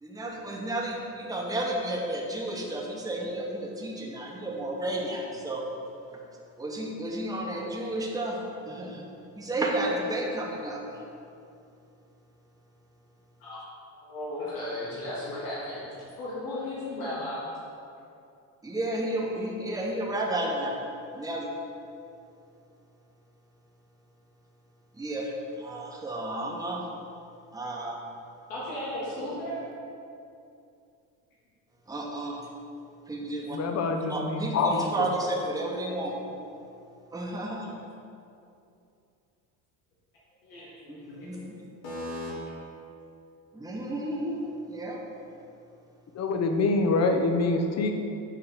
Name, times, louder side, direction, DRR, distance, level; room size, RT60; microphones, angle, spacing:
voice 1, 0.0-5.6 6.6-8.4 8.7-9.0 9.4-10.8 18.6-20.8 21.1-21.5 25.0-26.8 27.5-28.0 29.2-29.4 31.9-32.4 33.1-33.6 34.1-36.1 37.1-37.7 40.9-41.5 43.5-45.0, right 1 dB, 10° right, -2 dB, 1.0 m, -32 dB
voice 2, 14.0-15.9 16.2-17.5 28.5-29.7 40.4-41.3 41.8-42.3, left 1 dB, 85° left, -8 dB, 1.5 m, -35 dB
voice 3, 33.5-35.1 46.1-47.9, left 3 dB, 40° left, 5 dB, 0.8 m, -25 dB
6.8 x 3.2 x 5.8 m, 2.6 s
supercardioid pair, 85°, 41 cm